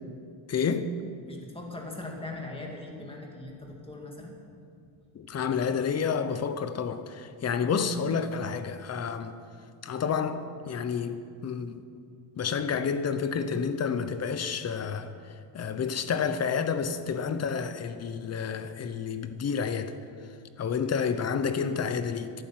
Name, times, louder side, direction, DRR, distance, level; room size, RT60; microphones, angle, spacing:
voice 1, 0.5-0.9 5.1-9.3 9.8-11.8 12.4-15.1 15.5-19.9 20.6-22.3, left 6 dB, 30° left, 0.8 m, -29 dB
voice 2, 1.2-4.4, left 2 dB, 10° left, 2.1 m, -40 dB
14.0 x 12.0 x 7.6 m
cardioid pair, 175°, 49 cm